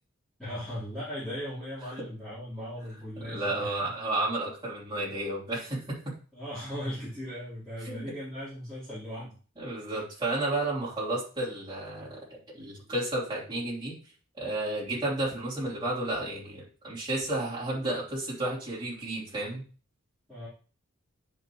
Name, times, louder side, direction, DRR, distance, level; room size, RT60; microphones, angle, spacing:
voice 1, 0.4-3.9 6.3-9.4 20.3-20.5, equal, 5° left, -14 dB, 3.7 m, -38 dB
voice 2, 2.9-6.1 7.8-8.0 9.5-12.2 12.5-14.0 14.4-19.6, right 2 dB, 20° right, -7 dB, 3.3 m, -32 dB
9.5 x 5.5 x 3.1 m, 0.38 s
head